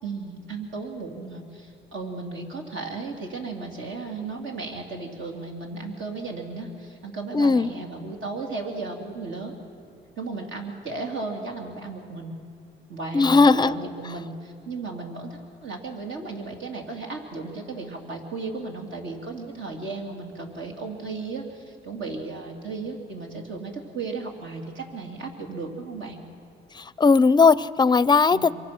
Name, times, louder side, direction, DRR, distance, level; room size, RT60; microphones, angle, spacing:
voice 1, 0.0-9.5 10.2-12.3 12.9-26.2 28.3-28.5, right 3 dB, 70° right, 1 dB, 3.1 m, -35 dB
voice 2, 7.3-7.7 13.1-13.8 27.0-28.5, left 4 dB, 20° left, 18 dB, 0.5 m, -17 dB
26.0 x 23.5 x 6.1 m, 2.4 s
cardioid pair, 90°, 20 cm